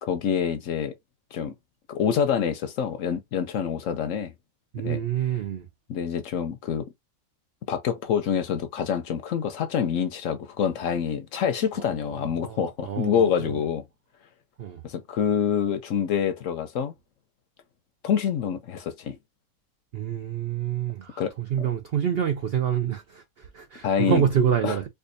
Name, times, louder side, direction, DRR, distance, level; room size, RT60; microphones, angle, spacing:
voice 1, 0.0-0.9 1.3-1.5 1.9-4.3 4.8-5.0 5.9-6.8 7.7-13.8 14.8-16.9 18.0-19.2 21.2-21.3 23.8-24.2 24.6-24.8, left 8 dB, 65° left, 0.9 m, -26 dB
voice 2, 4.7-5.7 11.8-13.6 14.6-14.8 19.9-24.9, right 9 dB, 85° right, 0.5 m, -27 dB
4.5 x 2.5 x 2.5 m
omnidirectional pair, 1.7 m